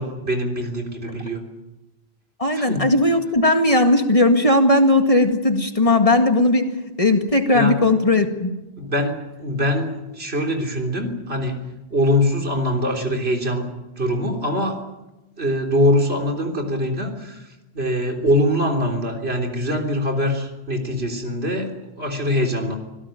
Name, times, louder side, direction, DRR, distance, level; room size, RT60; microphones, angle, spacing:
voice 1, 0.0-1.4 2.5-2.9 7.5-7.8 8.8-9.1 9.4-11.6 11.9-13.7 14.0-14.8 15.4-17.5 17.7-21.7 22.0-22.8, left 1 dB, 75° right, 2 dB, 3.9 m, -23 dB
voice 2, 2.4-6.7 7.0-8.5, left 2 dB, 35° left, 5 dB, 2.1 m, -17 dB
25.5 x 17.5 x 9.1 m, 1.0 s
omnidirectional pair, 1.1 m